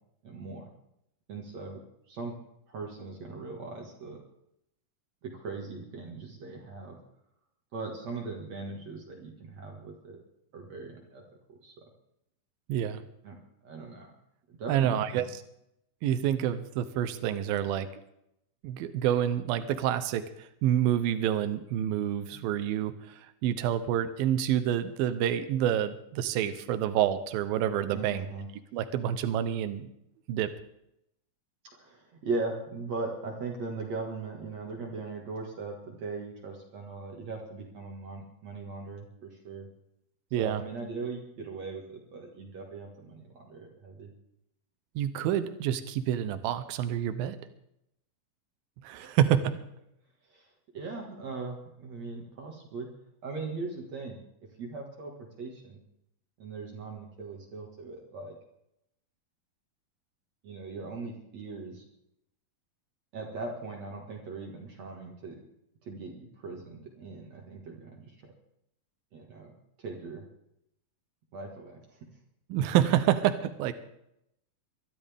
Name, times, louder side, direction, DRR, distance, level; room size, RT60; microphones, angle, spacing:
voice 1, 0.2-0.7 1.3-2.3 2.7-4.2 5.2-7.0 7.7-10.2 10.5-11.2 11.5-11.8 13.2-13.4 13.6-14.1 14.6-15.2 27.9-28.5 31.7-39.7 40.4-44.1 49.0-49.2 50.3-50.5 50.7-52.9 53.2-54.2 54.6-55.8 56.4-58.4 60.4-61.8 63.1-65.4 65.8-68.3 69.1-70.3 71.3-72.0, right 3 dB, 50° right, 0 dB, 2.8 m, -39 dB
voice 2, 12.7-13.0 14.7-15.3 16.0-17.9 18.6-23.2 23.4-28.3 28.7-29.9 30.3-30.5 40.3-40.6 45.0-47.4 48.8-49.5 72.5-73.7, right 10 dB, 80° right, 11 dB, 2.7 m, -28 dB
23.5 x 12.5 x 3.6 m, 0.79 s
omnidirectional pair, 4.2 m